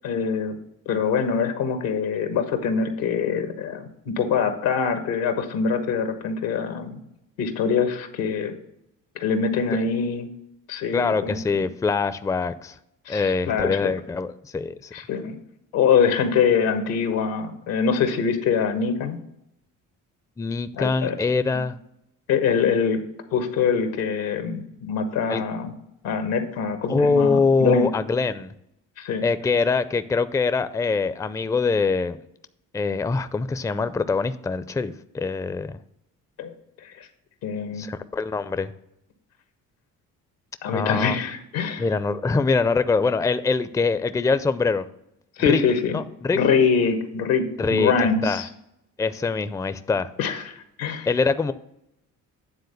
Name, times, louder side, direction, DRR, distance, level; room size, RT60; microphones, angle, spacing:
voice 1, 0.0-0.6 0.9-3.9 4.2-7.0 7.4-8.5 9.1-10.3 10.7-11.4 13.0-13.9 14.9-15.4 15.7-19.2 20.7-21.2 21.5-21.6 22.3-23.0 23.3-25.7 26.0-27.9 29.0-29.2 36.4-37.1 37.4-37.9 40.6-41.9 45.4-46.0 46.3-48.5 50.2-51.1, left 6 dB, 90° left, 7 dB, 1.2 m, -24 dB
voice 2, 10.9-12.8 13.1-14.9 20.4-21.8 25.3-25.4 26.9-28.5 29.2-32.2 32.7-35.8 37.8-38.7 40.7-41.1 41.8-44.9 45.5-45.6 45.9-46.4 47.6-48.4 49.0-50.1 51.1-51.5, left 4 dB, 10° left, 13 dB, 0.4 m, -23 dB
9.3 x 3.8 x 6.6 m, 0.81 s
supercardioid pair, 70°, 35 cm